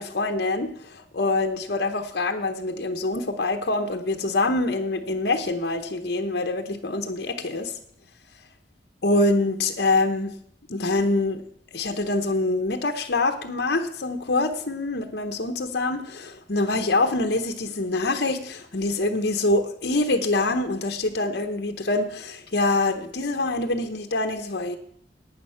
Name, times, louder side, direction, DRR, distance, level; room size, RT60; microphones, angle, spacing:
voice 1, 0.0-7.7 9.0-10.4 10.7-11.4 11.7-24.8, left 2 dB, 60° left, 5 dB, 1.0 m, -25 dB
11.0 x 9.0 x 5.7 m, 0.66 s
head